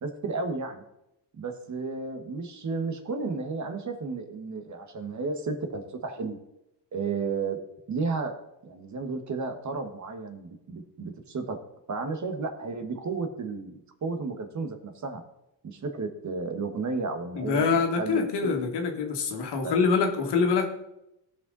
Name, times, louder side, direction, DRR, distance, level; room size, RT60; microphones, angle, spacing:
voice 1, 0.0-0.8 1.4-6.4 6.9-7.6 7.9-8.3 8.6-11.6 11.9-15.2 15.6-18.6 19.6-19.7, right 4 dB, 40° right, 7 dB, 1.5 m, -33 dB
voice 2, 17.3-20.6, left 5 dB, 65° left, 3 dB, 2.1 m, -25 dB
16.5 x 5.6 x 4.0 m, 0.85 s
cardioid pair, 105°, 44 cm